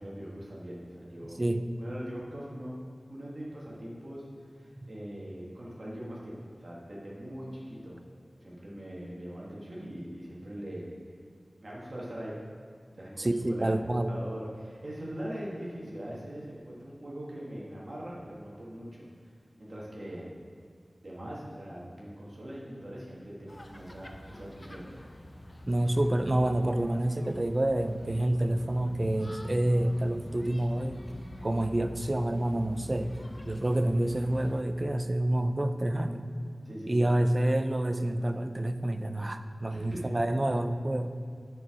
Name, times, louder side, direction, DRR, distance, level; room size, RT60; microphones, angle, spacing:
voice 1, 0.0-1.4 1.8-8.0 8.4-10.9 11.6-12.3 12.9-20.3 21.0-24.9 36.6-37.1 39.7-40.2, equal, 50° right, -6 dB, 1.6 m, -41 dB
voice 2, 1.2-1.6 4.8-4.9 13.2-14.1 25.7-31.0 31.4-33.1 33.4-36.3 36.9-41.1, right 1 dB, 35° right, 8 dB, 0.5 m, -28 dB
sound 1, 23.5-34.6, left 1 dB, 25° left, 0.6 m, -46 dB
9.8 x 4.6 x 5.0 m, 2.1 s
wide cardioid pair, 70°, 0 cm